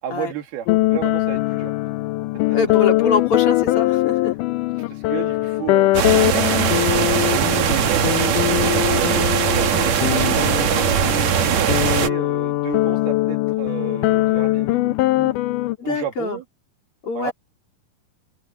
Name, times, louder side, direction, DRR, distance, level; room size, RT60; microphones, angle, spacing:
voice 1, 0.0-1.8 4.9-5.9 6.3-15.3 15.8-16.4 17.2-17.3, right 11 dB, 80° right, 4.1 m, -33 dB
sound 1, 0.7-15.8, left 18 dB, 80° left, 1.9 m, -21 dB
voice 2, 2.5-4.3 15.8-16.4 17.0-17.3, left 5 dB, 40° left, 4.0 m, -24 dB
sound 2, 5.9-12.1, right 8 dB, 55° right, 2.4 m, -20 dB
omnidirectional pair, 4.4 m